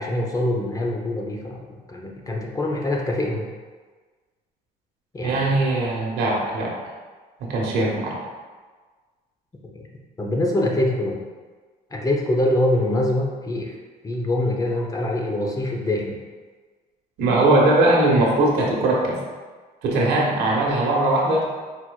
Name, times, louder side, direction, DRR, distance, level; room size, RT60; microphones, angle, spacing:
voice 1, 0.0-3.5 5.1-5.5 10.2-11.2 11.9-13.8 14.0-16.2, left 1 dB, 20° left, 0 dB, 0.6 m, -24 dB
voice 2, 5.2-6.7 7.4-8.2 17.2-19.2 19.8-21.5, right 2 dB, 80° right, -3 dB, 1.2 m, -20 dB
4.4 x 4.4 x 2.3 m, 1.4 s
cardioid pair, 110°, 17 cm